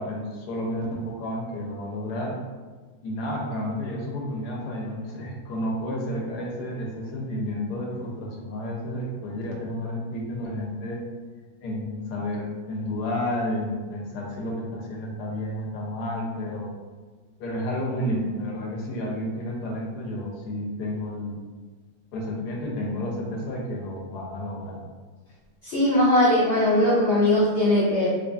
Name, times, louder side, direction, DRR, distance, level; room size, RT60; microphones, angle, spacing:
voice 1, 0.0-2.4 3.0-11.1 11.6-16.7 17.4-21.4 22.1-24.8, left 1 dB, 80° left, -1 dB, 1.2 m, -31 dB
voice 2, 25.6-28.1, left 1 dB, 60° left, -10 dB, 0.8 m, -20 dB
2.6 x 2.5 x 2.2 m, 1.4 s
omnidirectional pair, 1.7 m